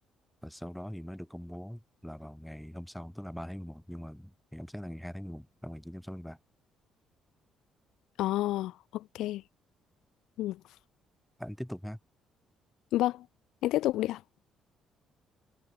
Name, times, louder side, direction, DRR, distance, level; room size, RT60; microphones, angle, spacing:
voice 1, 0.4-6.4 11.4-12.0, equal, ahead, 6.3 m, -42 dB
voice 2, 8.2-9.4 10.4-10.6 12.9-13.2 13.6-14.2, left 15 dB, 80° left, 1.6 m, -29 dB
cardioid pair, 155°, 0 cm